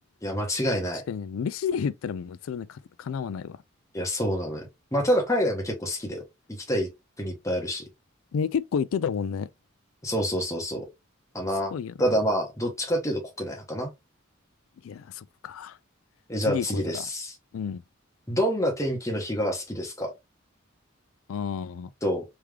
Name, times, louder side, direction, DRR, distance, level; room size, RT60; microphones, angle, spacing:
voice 1, 0.2-1.0 3.9-6.2 6.5-6.9 7.2-7.8 10.0-10.9 11.3-11.7 12.0-13.9 16.3-17.3 18.3-20.1 22.0-22.2, equal, 15° left, 1.2 m, -27 dB
voice 2, 1.1-3.6 8.3-9.5 11.7-12.2 14.8-15.8 16.5-17.0 17.5-17.8 21.3-21.9, left 7 dB, 80° left, 0.3 m, -31 dB
3.5 x 3.2 x 3.2 m
head